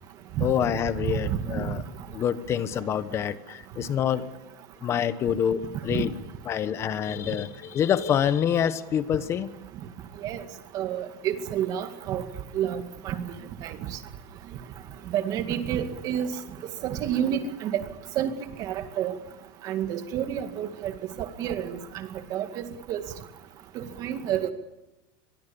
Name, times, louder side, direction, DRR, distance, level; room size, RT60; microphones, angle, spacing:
voice 1, 0.4-1.8 2.1-4.3 4.8-6.1 6.5-9.5, left 9 dB, 25° left, 13 dB, 1.2 m, -26 dB
voice 2, 1.3-1.7 5.9-6.0 10.2-10.4 10.7-12.3 12.5-13.3 13.6-13.8 15.1-16.3 16.8-17.8 18.2-18.3 18.6-19.2 19.6-20.9 21.2-23.0 23.8-24.5, right 9 dB, 30° right, 8 dB, 2.1 m, -29 dB
25.0 x 23.0 x 7.1 m, 1.0 s
supercardioid pair, 165°, 12 cm